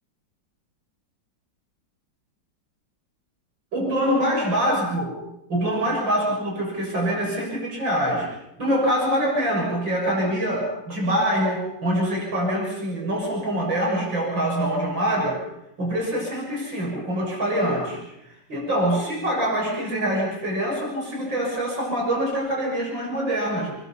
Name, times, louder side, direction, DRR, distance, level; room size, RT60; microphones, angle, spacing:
voice 1, 3.7-5.2 5.5-8.3 8.6-15.4 15.8-18.0 18.5-23.7, equal, 80° right, -2 dB, 7.7 m, -24 dB
26.5 x 23.0 x 5.8 m, 0.86 s
omnidirectional pair, 2.0 m